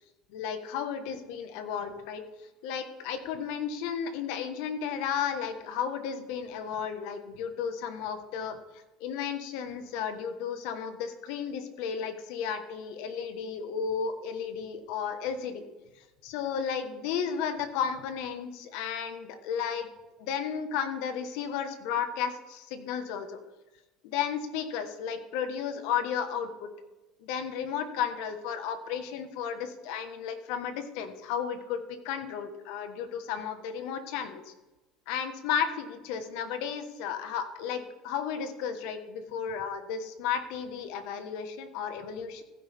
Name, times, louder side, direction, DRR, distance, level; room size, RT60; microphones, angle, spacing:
voice 1, 0.3-2.2 2.6-8.6 9.0-15.6 16.2-19.9 20.2-23.4 24.0-26.7 27.2-34.5 35.1-42.4, left 7 dB, 75° left, 8 dB, 1.5 m, -33 dB
15.5 x 10.0 x 3.6 m, 1.1 s
cardioid pair, 135°, 0 cm